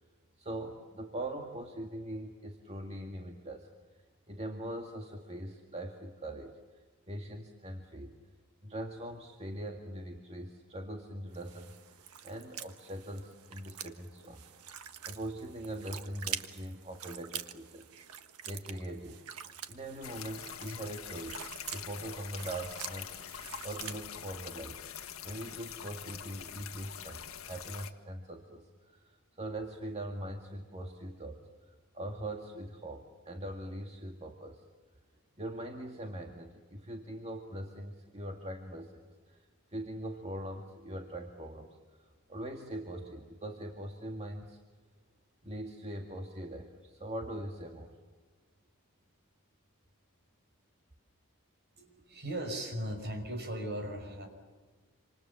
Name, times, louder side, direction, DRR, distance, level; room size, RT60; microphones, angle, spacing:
voice 1, 0.4-3.7 4.3-8.1 8.6-11.8 12.2-14.4 15.0-17.9 18.4-19.2 19.7-24.8 25.2-27.2 27.5-31.4 31.9-34.6 35.4-38.9 39.3-44.6 45.4-47.9, right 1 dB, 30° right, 2 dB, 2.0 m, -42 dB
sound 1, 11.3-24.0, right 9 dB, 80° right, 1.5 m, -46 dB
sound 2, 20.0-27.9, left 9 dB, 65° left, 1.7 m, -44 dB
voice 2, 51.8-54.3, right 1 dB, 50° right, 5 dB, 6.0 m, -38 dB
27.5 x 27.5 x 7.2 m, 1.4 s
head